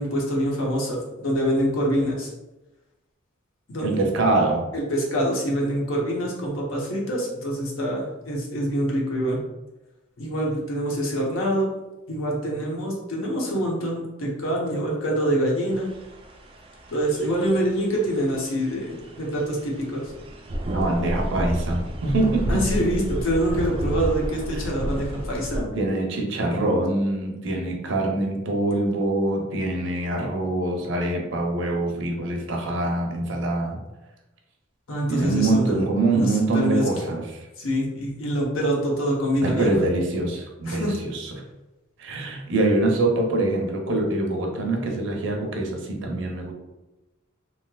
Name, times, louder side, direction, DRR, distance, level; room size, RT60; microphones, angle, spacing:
voice 1, 0.0-2.3 3.7-4.0 4.7-9.4 10.2-11.7 12.1-15.9 16.9-20.1 22.5-25.7 34.9-35.8 36.1-36.9 37.6-39.9 40.6-40.9, equal, 85° left, -2 dB, 0.8 m, -25 dB
voice 2, 3.8-4.7 20.7-22.6 25.7-33.8 35.1-37.4 39.4-41.3 42.0-46.5, right 2 dB, 60° right, 1 dB, 0.6 m, -24 dB
sound 1, 15.7-25.6, right 1 dB, 25° right, 0.3 m, -31 dB
3.1 x 2.8 x 2.2 m, 1.0 s
head